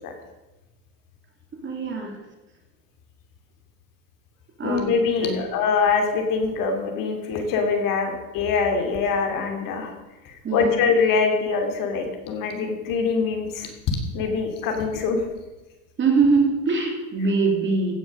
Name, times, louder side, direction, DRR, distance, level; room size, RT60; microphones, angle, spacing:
voice 1, 1.6-2.2 4.6-4.9 5.2-5.5 10.4-10.7 16.0-17.9, right 4 dB, 25° right, 2 dB, 2.8 m, -22 dB
voice 2, 4.6-9.9 10.2-13.7 14.1-15.2, left 5 dB, 50° left, 4 dB, 2.8 m, -24 dB
16.0 x 6.2 x 6.6 m, 1.0 s
supercardioid pair, 120°, 43 cm